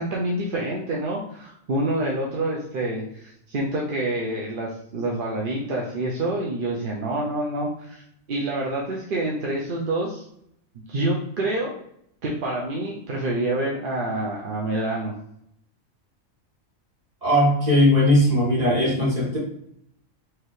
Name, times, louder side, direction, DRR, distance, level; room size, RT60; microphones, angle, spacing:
voice 1, 0.0-8.0 8.3-10.2 10.9-11.7 12.2-15.1, right 1 dB, 50° right, -3 dB, 0.7 m, -27 dB
voice 2, 17.2-19.4, left 1 dB, 30° right, -6 dB, 1.7 m, -19 dB
4.8 x 2.9 x 3.1 m, 0.72 s
omnidirectional pair, 1.4 m